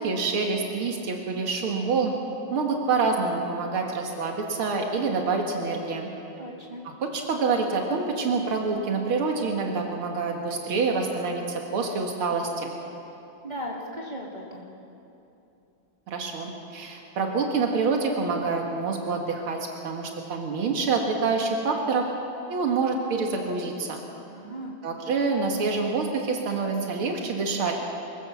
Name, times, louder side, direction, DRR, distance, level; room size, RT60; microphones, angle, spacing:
voice 1, 0.0-2.1 2.5-6.1 7.0-12.7 16.1-19.6 19.8-22.0 22.5-24.0 24.8-27.7, right 4 dB, 85° right, 2 dB, 2.4 m, -26 dB
voice 2, 6.4-6.8 13.4-14.7 24.3-24.7, equal, 20° right, -3 dB, 2.2 m, -37 dB
24.5 x 15.5 x 7.2 m, 2.8 s
omnidirectional pair, 2.3 m